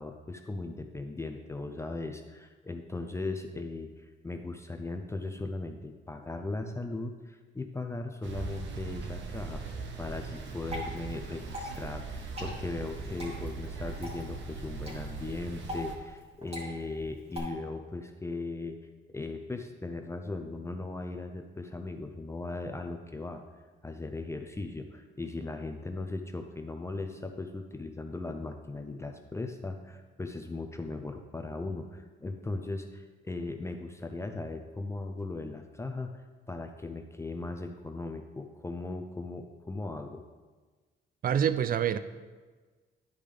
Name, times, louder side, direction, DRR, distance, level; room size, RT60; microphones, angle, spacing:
voice 1, 0.0-18.8 19.1-23.4 23.8-40.2, left 2 dB, 15° left, 0.5 m, -38 dB
sound 1, 8.2-15.9, right 4 dB, 70° right, 1.0 m, -40 dB
Water / Drip, 10.4-17.4, equal, 30° right, 2.2 m, -43 dB
voice 2, 41.2-42.0, right 9 dB, 45° right, 0.5 m, -26 dB
10.5 x 5.0 x 3.4 m
cardioid pair, 90°, 20 cm